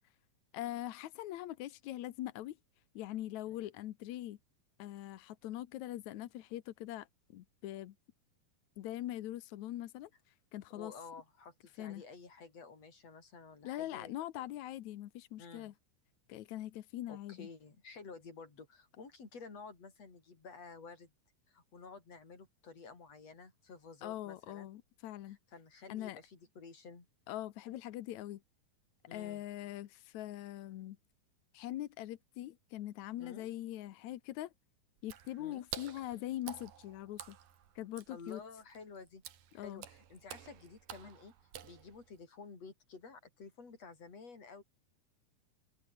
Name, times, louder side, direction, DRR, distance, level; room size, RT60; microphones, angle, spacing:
voice 1, 0.5-2.6 3.0-4.4 4.8-7.9 8.8-10.9 11.8-12.0 13.6-15.7 16.3-17.5 24.0-25.4 25.9-26.2 27.3-28.4 29.1-31.0 31.5-34.5 35.0-37.4 37.8-38.4 39.5-39.8, left 14 dB, 70° left, 1.9 m, -42 dB
voice 2, 10.7-14.4 15.4-15.7 17.1-21.1 21.5-24.7 25.3-27.1 29.1-29.4 33.2-33.5 35.4-35.7 38.1-39.2 39.5-41.3 41.6-44.6, left 4 dB, 45° left, 5.8 m, -52 dB
Water / Splash splatter, 35.0-42.2, right 10 dB, 65° right, 3.4 m, -50 dB
omnidirectional pair, 4.3 m